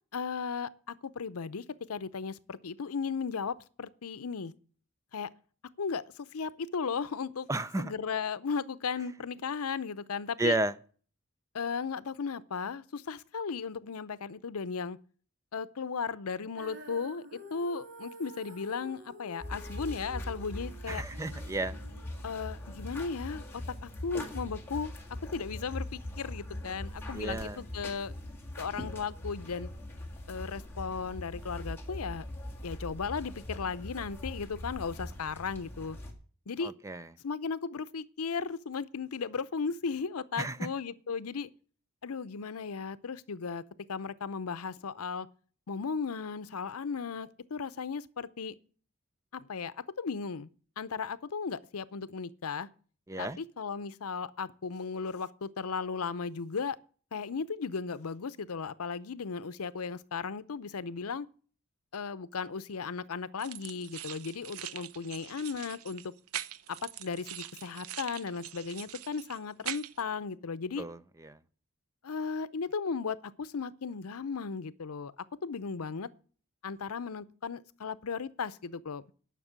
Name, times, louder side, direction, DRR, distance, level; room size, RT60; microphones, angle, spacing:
voice 1, 0.1-4.5 5.1-5.3 5.8-7.5 7.8-10.6 11.5-15.0 15.5-21.0 22.2-23.4 23.8-24.9 25.3-28.1 28.6-29.7 30.3-32.2 32.6-36.0 36.5-36.7 37.2-41.5 42.0-43.6 43.9-45.3 45.7-48.5 49.3-50.5 50.8-52.7 53.2-56.8 57.1-61.3 61.9-66.1 66.7-70.9 72.0-75.1 75.4-76.1 76.6-79.0, left 5 dB, 85° left, 0.6 m, -36 dB
voice 2, 7.5-7.9 10.4-10.8 20.9-21.8 27.1-27.6 36.6-37.1 40.4-40.6 53.1-53.4 70.8-71.4, right 2 dB, 15° right, 0.4 m, -33 dB
Female singing, 16.6-22.8, right 1 dB, 60° right, 2.6 m, -50 dB
sound 1, 19.4-36.1, left 1 dB, 10° left, 1.8 m, -41 dB
sound 2, 63.4-70.0, right 11 dB, 85° right, 0.6 m, -43 dB
11.0 x 6.0 x 8.0 m
head